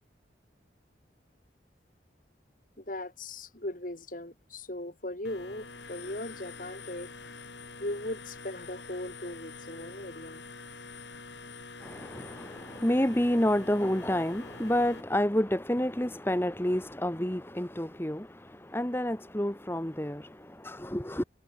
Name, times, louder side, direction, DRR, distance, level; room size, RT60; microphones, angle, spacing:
voice 1, 2.8-7.3 7.8-10.4 10.9-11.0 11.4-11.8, left 1 dB, 50° left, 2.8 m, -39 dB
sound 1, 5.3-15.0, left 4 dB, 75° left, 4.6 m, -46 dB
voice 2, 11.8-21.2, left 1 dB, 15° left, 1.6 m, -29 dB
head